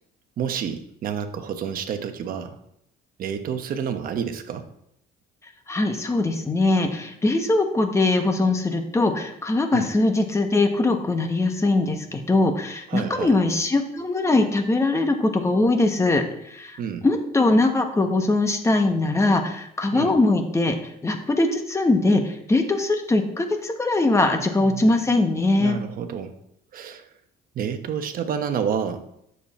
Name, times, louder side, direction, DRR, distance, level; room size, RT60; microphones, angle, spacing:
voice 1, 0.4-2.6 3.2-4.6 9.7-9.9 12.9-13.4 16.8-17.1 19.9-20.1 24.3-24.9 25.6-26.4 26.7-27.1 27.5-29.0, right 7 dB, 55° right, 7 dB, 1.1 m, -29 dB
voice 2, 5.7-20.7 21.0-25.8, left 2 dB, 15° left, 5 dB, 1.3 m, -21 dB
9.9 x 7.3 x 4.3 m, 0.77 s
cardioid pair, 110°, 17 cm